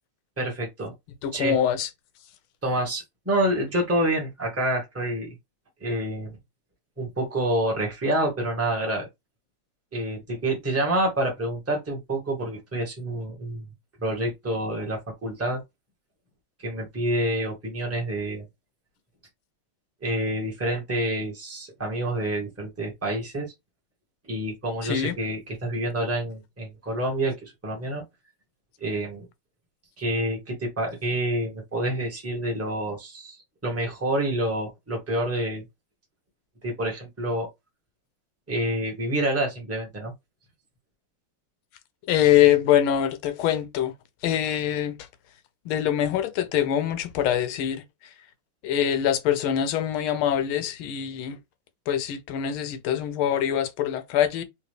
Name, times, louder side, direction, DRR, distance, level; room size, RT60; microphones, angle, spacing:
voice 1, 0.4-0.9 1.3-1.6 2.6-5.3 5.8-6.4 7.0-9.1 9.9-13.6 14.0-15.6 16.6-18.4 20.0-23.5 24.3-28.0 28.8-29.3 30.0-33.4 33.6-35.6 36.6-37.5 38.5-40.1, right 1 dB, 10° right, 0.9 m, -28 dB
voice 2, 1.2-1.9 24.8-25.1 42.1-43.9 44.2-45.0 45.7-47.8 48.6-51.4 51.9-54.4, left 10 dB, 80° left, 1.5 m, -24 dB
3.7 x 3.0 x 3.2 m
omnidirectional pair, 2.4 m